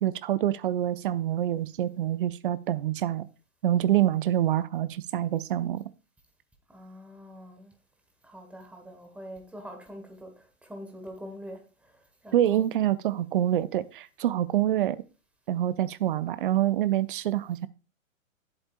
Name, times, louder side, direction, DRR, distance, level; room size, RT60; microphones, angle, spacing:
voice 1, 0.0-3.3 3.6-5.8 12.3-15.0 15.5-17.7, right 12 dB, 40° right, 0.6 m, -26 dB
voice 2, 6.7-7.7 8.2-12.7, equal, 5° right, 1.4 m, -44 dB
11.5 x 7.8 x 2.5 m
figure-of-eight pair, 115°, 42 cm